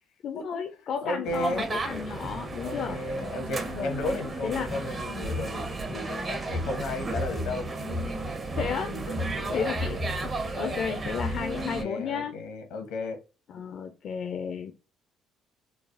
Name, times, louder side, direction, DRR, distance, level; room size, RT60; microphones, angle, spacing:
voice 1, 0.2-3.0 3.7-3.9 4.4-4.7 8.5-8.9 9.5-12.3 13.5-14.7, left 7 dB, 60° left, 0.4 m, -33 dB
voice 2, 1.0-1.7 2.6-8.4 8.8-9.7 11.5-13.2, left 2 dB, 80° left, 0.8 m, -34 dB
sound 1, 1.3-11.8, right 2 dB, 35° right, 0.7 m, -33 dB
3.2 x 2.0 x 2.4 m
supercardioid pair, 70°, 0 cm